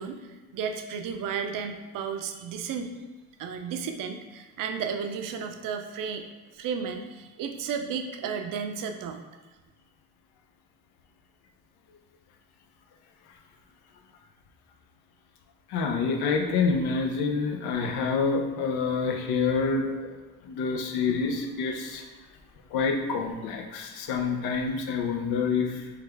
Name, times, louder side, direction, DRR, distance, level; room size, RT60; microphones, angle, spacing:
voice 1, 0.0-2.9 3.4-6.3 6.5-9.2, right 6 dB, 60° right, 5 dB, 0.5 m, -33 dB
voice 2, 15.7-20.2 20.4-22.1 22.7-25.9, left 5 dB, 80° left, 3 dB, 0.6 m, -27 dB
3.2 x 2.3 x 3.3 m, 1.2 s
cardioid pair, 95°, 38 cm